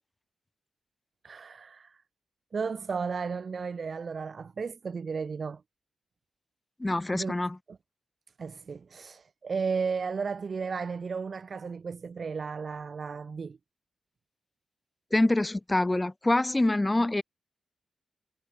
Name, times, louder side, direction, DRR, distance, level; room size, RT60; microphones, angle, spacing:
voice 1, 1.2-2.0 2.5-5.6 7.1-7.3 7.7-7.8 8.4-13.6, right 5 dB, 55° right, 7.8 m, -34 dB
voice 2, 6.8-7.6 15.1-17.2, left 2 dB, 20° left, 2.0 m, -25 dB
cardioid pair, 80°, 0 cm